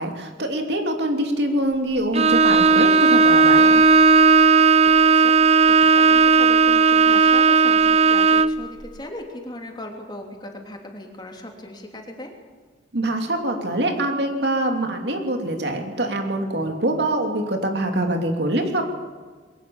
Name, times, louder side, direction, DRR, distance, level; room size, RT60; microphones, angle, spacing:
voice 1, 0.0-3.8 12.9-18.8, right 1 dB, 65° right, 3 dB, 2.9 m, -24 dB
Bowed string instrument, 2.1-8.6, right 4 dB, 35° right, 0.6 m, -15 dB
voice 2, 4.8-12.3, left 1 dB, 25° left, 2 dB, 3.2 m, -38 dB
22.0 x 18.5 x 7.1 m, 1.5 s
head